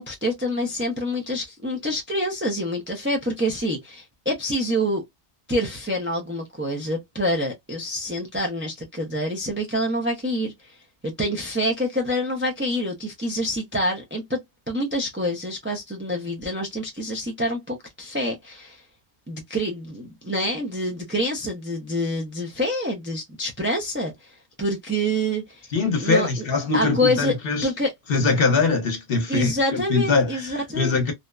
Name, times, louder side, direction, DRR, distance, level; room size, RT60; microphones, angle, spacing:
voice 1, 0.0-5.0 5.5-10.8 11.0-14.4 14.7-18.8 19.3-25.7 26.0-26.4 26.7-27.3 27.6-27.9 29.3-31.0, equal, 20° right, 0.4 m, -26 dB
voice 2, 25.7-27.7 28.1-31.1, left 4 dB, 60° left, 1.0 m, -22 dB
2.7 x 2.0 x 2.2 m
omnidirectional pair, 1.1 m